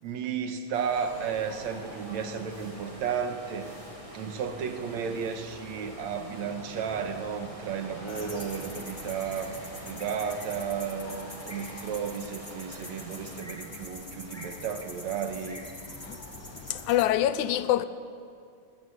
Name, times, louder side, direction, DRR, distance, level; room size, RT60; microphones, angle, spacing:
voice 1, 0.0-3.7 4.1-15.6, right 7 dB, 70° right, 2.6 m, -33 dB
sound 1, 0.7-13.4, right 1 dB, 10° right, 2.4 m, -48 dB
sound 2, 0.9-16.9, equal, 40° left, 5.7 m, -47 dB
sound 3, 8.1-17.1, left 1 dB, 15° left, 1.2 m, -44 dB
voice 2, 16.7-17.9, left 12 dB, 85° left, 2.2 m, -25 dB
19.5 x 18.0 x 9.5 m
omnidirectional pair, 3.4 m